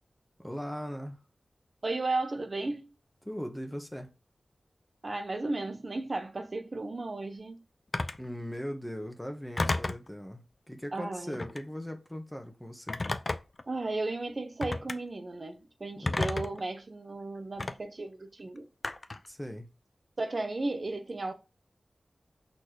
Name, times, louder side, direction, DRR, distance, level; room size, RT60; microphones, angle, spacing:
voice 1, 0.4-1.2 3.2-4.1 8.2-13.0 16.0-16.3 19.3-19.7, equal, 10° left, 1.3 m, -39 dB
voice 2, 1.8-2.9 5.0-7.6 10.9-11.4 13.7-18.7 20.2-21.3, right 2 dB, 45° right, 1.0 m, -34 dB
Telephone, 7.9-8.3 9.6-10.1 11.3-11.7 12.9-13.6 14.6-15.0 16.1-16.6 17.6-17.7 18.8-19.3, left 2 dB, 45° left, 0.6 m, -31 dB
6.2 x 4.3 x 4.9 m
wide cardioid pair, 75°, 0 cm